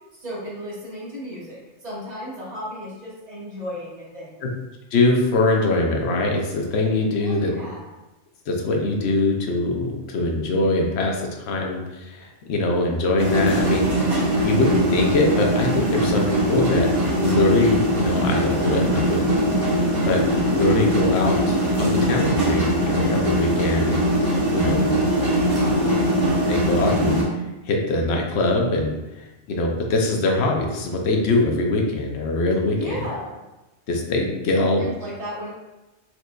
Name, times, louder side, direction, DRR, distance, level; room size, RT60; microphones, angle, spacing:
voice 1, 0.2-4.5 7.2-7.9 25.1-26.1 32.7-33.4 34.5-35.5, equal, 35° right, -8 dB, 1.3 m, -35 dB
voice 2, 4.9-7.5 8.5-16.9 17.2-19.4 19.7-24.9 26.5-27.2 27.7-33.1 33.9-34.8, left 2 dB, 65° left, 1 dB, 0.8 m, -23 dB
sound 1, 13.2-27.2, equal, 85° right, 1.8 m, -21 dB
4.3 x 2.5 x 2.2 m, 1.0 s
omnidirectional pair, 1.3 m